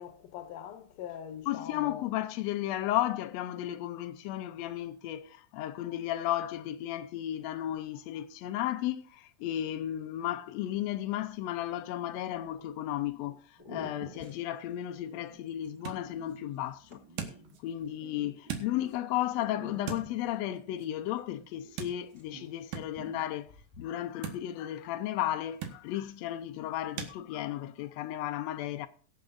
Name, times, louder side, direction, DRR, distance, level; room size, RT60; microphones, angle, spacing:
voice 1, 0.0-2.1, left 9 dB, 70° left, 1.8 m, -42 dB
voice 2, 1.5-13.4 13.7-17.0 17.6-23.5 23.8-28.9, left 13 dB, 85° left, 1.5 m, -34 dB
sound 1, 12.1-12.6 13.3-13.4 13.6-18.9 19.4-21.8 22.1-22.6 22.9-23.9, right 1 dB, 10° right, 1.6 m, -51 dB
sound 2, 14.7-27.2, right 8 dB, 75° right, 2.8 m, -45 dB
22.5 x 7.5 x 2.6 m
omnidirectional pair, 3.7 m